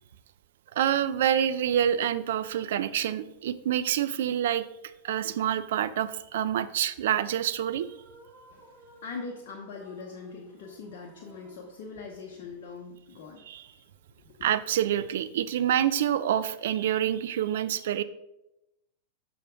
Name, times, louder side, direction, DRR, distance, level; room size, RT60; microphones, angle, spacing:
voice 1, 0.7-4.7 5.0-7.9 13.5-13.7 14.4-18.0, right 10 dB, 60° right, 13 dB, 0.4 m, -27 dB
sound 1, 7.8-12.6, right 1 dB, 40° right, 2.5 m, -56 dB
voice 2, 8.5-13.8 14.2-14.4, left 4 dB, 50° left, 0 dB, 0.9 m, -42 dB
6.5 x 5.9 x 3.7 m, 0.91 s
figure-of-eight pair, 90°, 0 cm